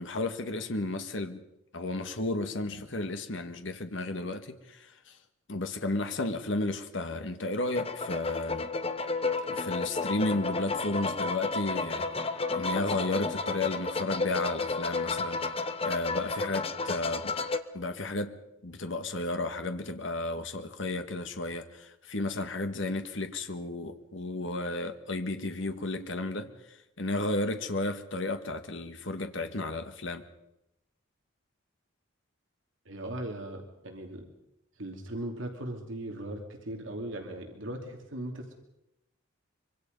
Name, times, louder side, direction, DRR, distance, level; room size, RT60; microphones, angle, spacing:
voice 1, 0.0-1.4 1.7-5.2 5.5-8.7 9.5-12.1 12.5-15.4 15.8-17.3 17.7-18.4 18.6-30.2, left 2 dB, 65° left, 1.6 m, -33 dB
sound 1, 7.7-17.6, left 3 dB, 30° left, 1.1 m, -32 dB
voice 2, 32.9-34.3 34.8-38.5, right 1 dB, 70° right, 2.9 m, -38 dB
24.5 x 24.5 x 5.4 m
head